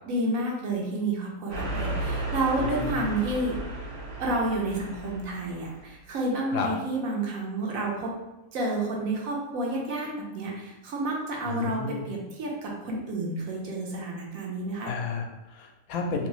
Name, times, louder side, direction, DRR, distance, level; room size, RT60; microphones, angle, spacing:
voice 1, 0.1-3.6 4.2-8.1 8.5-14.9, right 2 dB, 75° right, -2 dB, 1.2 m, -30 dB
sound 1, 1.5-5.7, right 2 dB, 60° right, 1.3 m, -34 dB
voice 2, 2.6-3.1 6.5-6.7 11.5-12.1 14.8-16.3, left 4 dB, 85° left, 3 dB, 1.0 m, -32 dB
2.9 x 2.6 x 3.1 m, 1.0 s
omnidirectional pair, 1.4 m